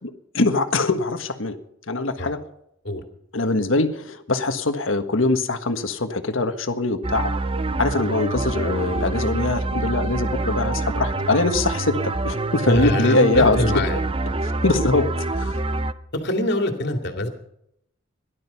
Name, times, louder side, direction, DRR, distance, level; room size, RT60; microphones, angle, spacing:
voice 1, 0.0-1.5 1.9-2.4 3.3-7.5 7.8-13.8 14.6-15.0 15.3-15.6, left 2 dB, 90° left, 8 dB, 1.5 m, -22 dB
sound 1, 7.0-15.9, right 2 dB, 30° right, 0.7 m, -26 dB
voice 2, 12.7-14.0 14.3-14.4 16.1-17.3, left 1 dB, 60° left, 5 dB, 2.4 m, -24 dB
17.0 x 12.0 x 5.7 m, 0.77 s
head